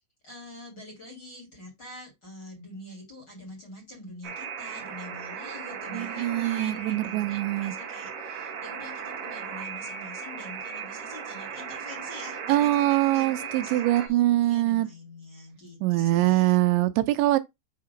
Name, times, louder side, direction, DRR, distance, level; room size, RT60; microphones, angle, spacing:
voice 1, 0.2-16.6, left 1 dB, 35° left, 2.1 m, -45 dB
Alarm, 4.2-14.1, right 6 dB, 65° right, 2.4 m, -37 dB
voice 2, 5.9-7.7 12.5-14.9 15.8-17.4, right 15 dB, 85° right, 3.0 m, -23 dB
7.5 x 2.9 x 5.1 m
omnidirectional pair, 5.1 m